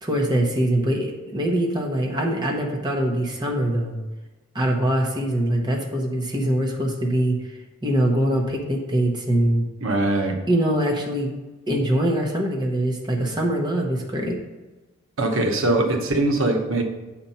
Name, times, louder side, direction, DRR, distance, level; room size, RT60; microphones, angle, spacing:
voice 1, 0.0-4.0 4.5-7.4 7.8-9.7 10.5-11.3 11.7-14.4, right 1 dB, 20° right, 0 dB, 1.0 m, -23 dB
voice 2, 9.8-10.4 15.2-16.8, right 2 dB, 85° right, 3 dB, 1.0 m, -21 dB
7.8 x 4.3 x 5.6 m, 1.1 s
head